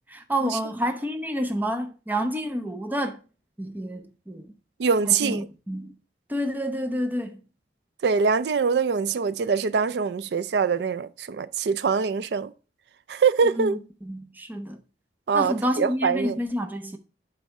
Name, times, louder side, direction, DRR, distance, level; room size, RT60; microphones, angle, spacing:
voice 1, 0.1-3.2 3.6-4.5 5.0-6.0 6.3-7.4 13.6-14.8 15.3-17.0, equal, 10° right, 0.7 m, -29 dB
voice 2, 4.8-5.5 8.0-12.5 13.1-13.8 15.3-16.4, right 5 dB, 70° right, 0.4 m, -23 dB
8.2 x 3.4 x 5.2 m
head